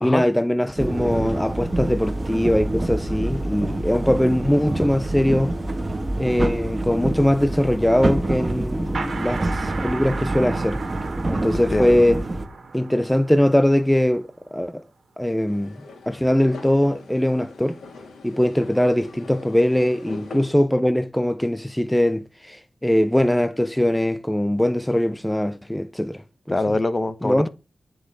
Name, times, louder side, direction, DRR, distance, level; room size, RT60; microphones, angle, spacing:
voice 1, 0.0-5.5 6.2-10.8 11.3-12.2 12.7-14.8 15.2-15.7 16.1-17.8 18.2-26.2 27.2-27.5, left 1 dB, 5° left, 0.7 m, -21 dB
sound 1, 0.8-12.5, right 2 dB, 30° right, 1.6 m, -27 dB
sound 2, 8.9-14.4, right 4 dB, 60° right, 2.0 m, -35 dB
voice 2, 11.5-12.0 26.5-27.5, left 2 dB, 30° left, 1.1 m, -24 dB
sound 3, 15.5-20.6, left 3 dB, 90° left, 3.2 m, -41 dB
10.0 x 6.3 x 4.9 m
cardioid pair, 60°, 0 cm